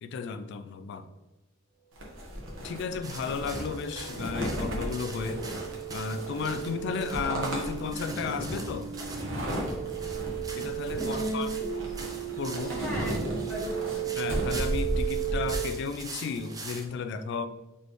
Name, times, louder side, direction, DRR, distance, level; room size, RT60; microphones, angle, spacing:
voice 1, 0.0-1.1 2.6-5.5 5.9-8.9 10.5-11.6 12.4-12.8 14.2-17.5, left 5 dB, 60° left, 10 dB, 0.3 m, -34 dB
sound 1, 2.0-15.6, equal, 75° right, 1.2 m, -35 dB
sound 2, 2.4-15.6, right 13 dB, 25° left, 0.9 m, -36 dB
sound 3, 3.0-16.9, right 3 dB, 20° right, 0.5 m, -44 dB
voice 2, 10.9-11.7 12.7-14.3, left 1 dB, 10° left, -5 dB, 1.3 m, -36 dB
4.1 x 3.3 x 3.1 m, 1.1 s
head